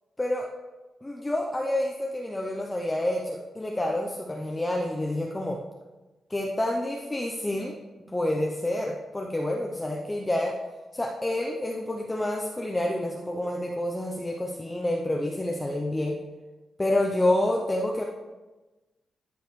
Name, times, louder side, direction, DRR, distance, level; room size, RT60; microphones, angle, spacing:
voice 1, 1.0-5.6 6.3-7.8 8.1-10.5 10.9-16.2 16.8-18.0, left 1 dB, 10° left, 0 dB, 0.6 m, -28 dB
13.0 x 5.2 x 3.1 m, 1.2 s
wide cardioid pair, 165°, 0 cm